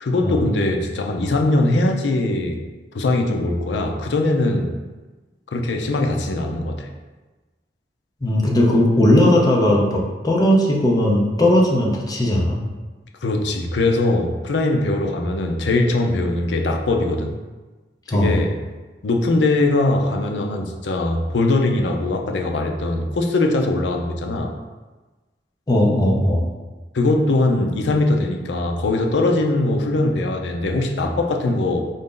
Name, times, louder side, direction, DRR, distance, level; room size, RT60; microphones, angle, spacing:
voice 1, 0.0-2.6 2.9-4.7 5.5-6.9 13.2-17.3 18.1-18.6 19.0-24.5 26.9-31.8, left 2 dB, 70° left, 3 dB, 0.5 m, -21 dB
voice 2, 8.2-12.6 18.1-18.4 25.7-26.5, left 1 dB, 20° left, -2 dB, 0.6 m, -17 dB
4.3 x 2.6 x 3.7 m, 1.2 s
head